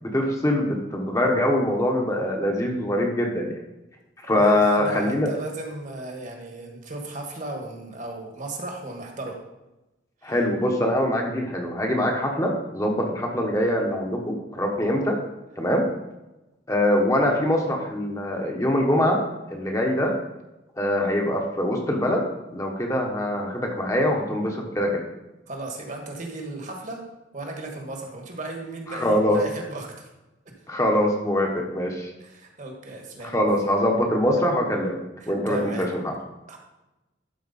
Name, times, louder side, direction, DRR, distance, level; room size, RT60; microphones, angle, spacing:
voice 1, 0.0-3.5 4.2-5.3 10.2-15.2 15.6-15.8 16.7-19.2 19.5-20.1 20.8-22.2 22.5-25.0 28.9-29.4 30.7-32.1 33.2-35.0 35.3-36.1, left 1 dB, 15° left, 1 dB, 1.1 m, -23 dB
voice 2, 4.2-9.4 10.2-10.3 25.5-27.0 27.3-30.1 32.2-33.3 35.2-35.9 36.5-36.6, right 2 dB, 45° right, 2 dB, 1.5 m, -36 dB
12.0 x 4.6 x 4.1 m, 0.98 s
head